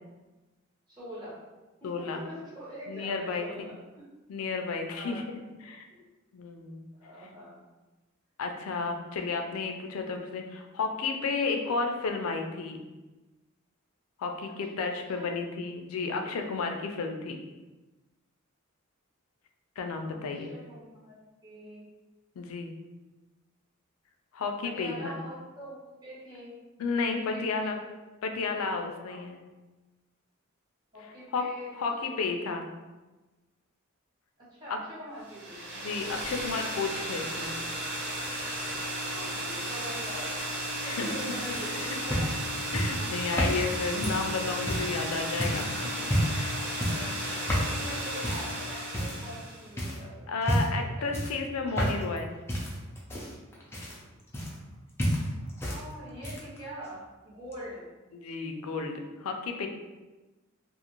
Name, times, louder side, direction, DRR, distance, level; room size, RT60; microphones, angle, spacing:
voice 1, 0.9-1.4 1.8-4.1 4.9-5.2 5.9-6.1 6.9-7.6 15.1-15.3 16.2-16.4 20.1-21.1 21.4-21.8 24.6-25.7 26.0-26.6 27.1-27.7 29.0-29.2 30.9-32.3 34.4-35.6 39.1-40.3 40.8-42.7 43.0-43.1 46.3-50.3 50.7-51.1 55.7-57.9, equal, 20° right, -9 dB, 1.0 m, -43 dB
voice 2, 1.8-2.2 2.9-3.7 4.3-5.2 5.6-5.8 6.3-6.9 8.4-12.8 14.2-17.4 19.8-20.5 22.4-22.7 24.3-25.2 26.8-27.8 28.2-29.4 31.3-31.4 31.8-32.6 34.7-34.8 35.8-37.5 40.8-41.1 41.8-42.0 42.7-45.9 46.3-46.5 50.3-52.3 58.1-59.7, left 4 dB, 80° left, 4 dB, 0.4 m, -32 dB
sound 1, 35.2-49.7, right 1 dB, 55° right, 0.5 m, -34 dB
sound 2, 41.5-45.0 45.4-45.7 46.0-46.5 46.8-47.1 47.5-47.8 48.2-48.5 48.9-49.4 49.8-50.0 50.4-50.8 51.1-52.2 52.5-54.7 55.0-55.8 56.1-56.6 57.5-57.6, equal, 10° left, 0.4 m, -30 dB
2.4 x 2.4 x 2.9 m, 1.2 s
head